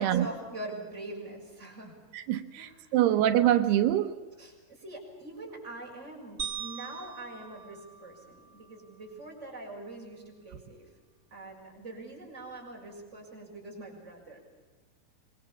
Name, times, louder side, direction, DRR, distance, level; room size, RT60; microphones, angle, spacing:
voice 1, 0.0-2.0 2.5-3.0 4.4-10.9 11.3-14.4, right 2 dB, 15° right, -1 dB, 6.6 m, -43 dB
voice 2, 2.1-4.2, right 12 dB, 85° right, 8 dB, 3.0 m, -25 dB
sound 1, 6.4-8.8, right 8 dB, 40° right, 1.9 m, -41 dB
25.5 x 22.5 x 7.2 m, 1.3 s
omnidirectional pair, 4.6 m